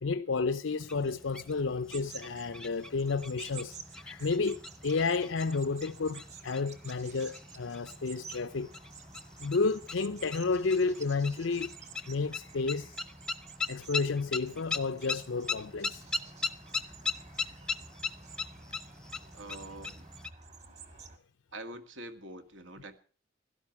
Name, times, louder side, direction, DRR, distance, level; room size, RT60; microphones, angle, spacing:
voice 1, 0.0-8.7 9.4-11.7 12.1-13.0 13.7-16.0, left 4 dB, 85° left, 0.6 m, -31 dB
sound 1, 0.8-20.3, left 4 dB, 5° left, 0.8 m, -40 dB
sound 2, 1.9-21.2, right 5 dB, 35° right, 1.9 m, -51 dB
voice 2, 19.3-20.1 21.5-23.0, right 1 dB, 80° right, 2.1 m, -45 dB
16.5 x 13.0 x 6.0 m
head